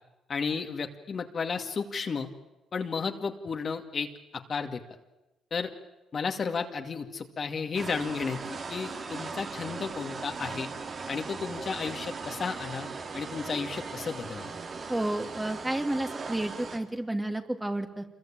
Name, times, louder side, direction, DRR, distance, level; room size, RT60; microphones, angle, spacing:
voice 1, 0.3-2.3 2.7-4.8 5.5-5.7 6.1-10.7 11.1-14.5, left 5 dB, 45° left, 5 dB, 2.4 m, -33 dB
sound 1, 7.7-16.8, right 4 dB, 45° right, 3.0 m, -38 dB
voice 2, 14.9-18.0, right 1 dB, 10° right, 5 dB, 2.6 m, -31 dB
27.0 x 22.5 x 9.0 m, 1.0 s
cardioid pair, 90°, 0 cm